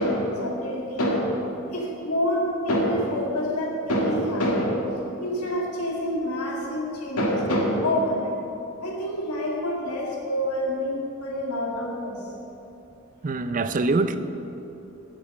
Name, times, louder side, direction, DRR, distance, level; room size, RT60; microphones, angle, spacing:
voice 1, 0.0-4.9 5.2-8.4 8.8-12.3, equal, 85° left, -2 dB, 2.1 m, -26 dB
voice 2, 13.2-14.2, right 3 dB, 40° right, 10 dB, 0.5 m, -24 dB
8.4 x 8.3 x 8.3 m, 3.0 s
head